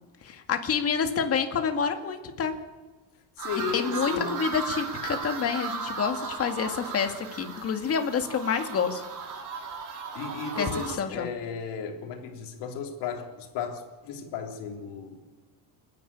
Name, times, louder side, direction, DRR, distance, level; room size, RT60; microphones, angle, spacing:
voice 1, 0.2-2.6 3.7-9.0 10.5-11.3, left 6 dB, 30° left, 6 dB, 2.1 m, -28 dB
voice 2, 3.4-4.4 10.2-15.2, left 6 dB, 65° left, 3 dB, 3.6 m, -34 dB
sound 1, 3.4-11.0, right 5 dB, 45° right, 3.2 m, -36 dB
29.0 x 10.5 x 8.6 m, 1.3 s
cardioid pair, 165°, 44 cm